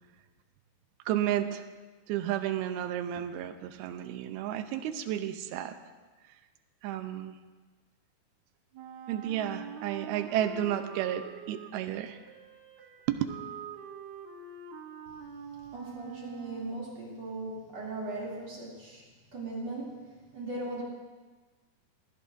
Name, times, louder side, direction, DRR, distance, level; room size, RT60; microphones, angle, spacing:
voice 1, 1.1-1.6 2.1-5.7 6.8-7.4 9.1-12.2 13.1-13.2, right 11 dB, 90° right, 9 dB, 2.7 m, -32 dB
Wind instrument woodwind instrument, 8.7-16.8, right 6 dB, 70° right, 1.9 m, -45 dB
voice 2, 15.6-20.8, right 2 dB, 45° right, -5 dB, 3.8 m, -39 dB
22.0 x 15.5 x 2.7 m, 1.3 s
omnidirectional pair, 4.4 m